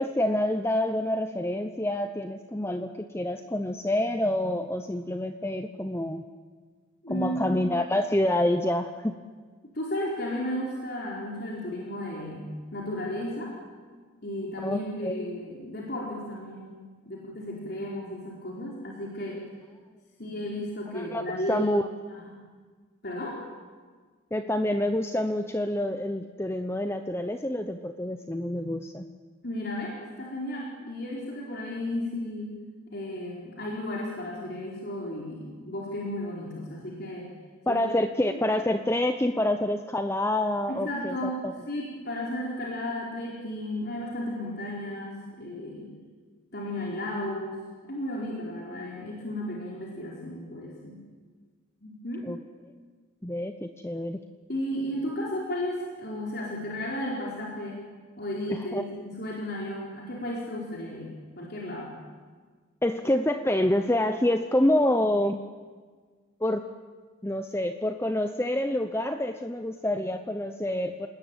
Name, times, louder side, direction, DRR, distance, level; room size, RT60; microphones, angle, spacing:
voice 1, 0.0-6.2 7.1-9.2 14.6-15.2 20.9-21.9 24.3-29.1 37.7-41.5 52.2-52.4 53.2-54.2 58.5-58.8 62.8-65.4 66.4-66.7 67.2-71.1, left 1 dB, 15° left, 7 dB, 0.8 m, -27 dB
voice 2, 7.0-7.6 9.7-13.5 14.2-16.8 17.1-19.4 20.2-21.7 22.1-22.2 23.0-23.4 29.4-32.5 32.9-37.3 37.7-37.8 38.3-38.4 40.7-45.9 46.5-47.6 47.9-51.0 51.8-52.3 54.5-57.8 58.2-61.1 61.4-61.9, left 1 dB, 50° left, -3 dB, 4.6 m, -34 dB
29.0 x 20.0 x 9.2 m, 1.5 s
head